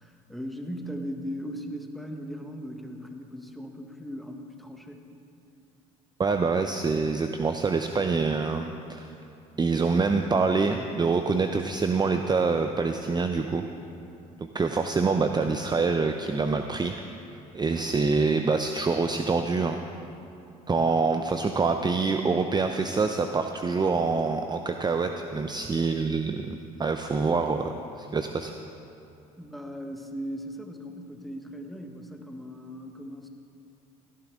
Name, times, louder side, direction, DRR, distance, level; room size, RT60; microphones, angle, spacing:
voice 1, 0.0-5.0 29.4-33.3, equal, ahead, 3 dB, 1.5 m, -38 dB
voice 2, 6.2-9.1 9.6-13.6 14.5-17.0 17.5-19.8 20.7-28.5, right 4 dB, 25° right, 6 dB, 0.7 m, -26 dB
17.0 x 11.5 x 3.7 m, 2.8 s
hypercardioid pair, 65°, 18 cm